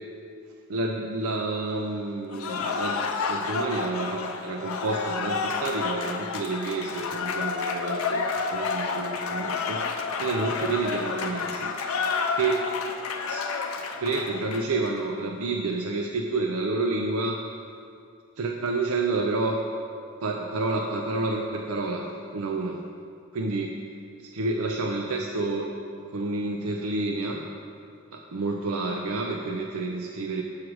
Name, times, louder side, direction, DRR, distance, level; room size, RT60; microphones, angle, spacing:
voice 1, 0.7-9.8 10.2-11.7 12.3-12.7 13.3-13.4 14.0-17.4 18.4-19.7 20.2-22.8 23.3-23.7 24.2-25.7 26.0-27.4 28.1-30.4, right 3 dB, 80° right, 1 dB, 0.5 m, -29 dB
Cheering / Applause, 2.3-14.9, left 5 dB, 75° left, 0.5 m, -30 dB
6.4 x 4.7 x 6.2 m, 2.3 s
head